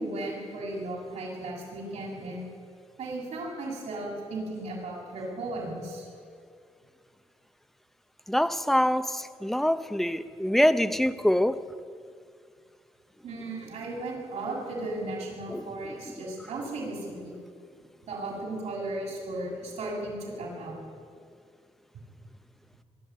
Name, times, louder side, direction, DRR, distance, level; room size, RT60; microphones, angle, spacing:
voice 1, 0.0-2.4 3.0-6.1 13.2-17.4 18.1-20.8 21.9-22.0, right 2 dB, 90° right, 7.4 m, -35 dB
voice 2, 8.3-11.6 15.5-16.1, equal, ahead, 0.6 m, -25 dB
23.0 x 12.5 x 9.3 m
wide cardioid pair, 160°, 11 cm